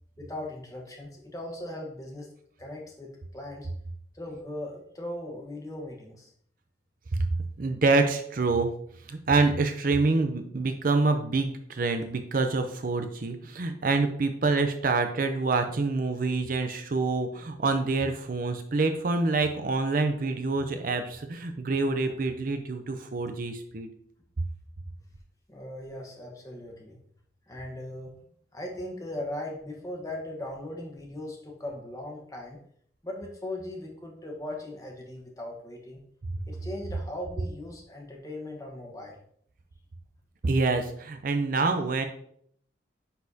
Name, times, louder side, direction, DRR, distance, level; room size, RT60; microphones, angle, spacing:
voice 1, 0.2-2.3 2.6-3.7 4.1-6.3 25.5-27.0 27.5-28.1 28.5-32.6 33.0-36.0 36.5-39.2, left 1 dB, 20° left, 0 dB, 1.2 m, -38 dB
voice 2, 7.1-8.7 9.1-23.9 40.4-42.1, right 3 dB, 45° right, 7 dB, 0.5 m, -26 dB
9.4 x 4.2 x 2.7 m, 0.65 s
head